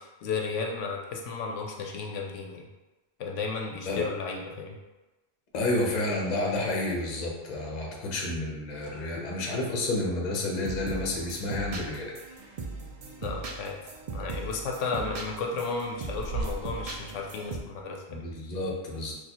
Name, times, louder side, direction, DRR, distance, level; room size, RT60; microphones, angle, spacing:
voice 1, 0.0-2.7 3.2-4.8 13.2-13.8 14.1-18.3, left 4 dB, 85° left, 1 dB, 0.9 m, -33 dB
voice 2, 5.5-12.1 18.1-19.1, left 2 dB, 45° left, -2 dB, 0.7 m, -30 dB
sound 1, 8.6-17.8, right 3 dB, 90° right, 0.9 m, -44 dB
sound 2, 10.5-17.6, right 3 dB, 70° right, 0.3 m, -39 dB
4.1 x 2.3 x 2.9 m, 1.1 s
omnidirectional pair, 1.2 m